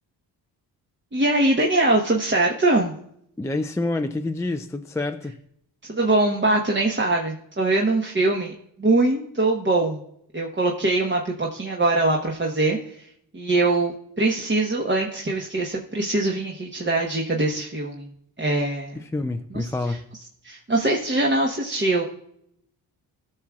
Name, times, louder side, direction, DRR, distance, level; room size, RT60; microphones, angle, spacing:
voice 1, 1.1-2.9 5.9-8.5 8.8-10.0 10.3-13.1 13.3-18.1 18.4-19.0 19.5-19.6 20.4-22.0, right 2 dB, 25° right, 0 dB, 1.2 m, -22 dB
voice 2, 3.4-5.4 19.0-20.1, left 2 dB, 5° left, 6 dB, 0.4 m, -27 dB
14.0 x 6.2 x 2.4 m, 0.72 s
cardioid pair, 60°, 42 cm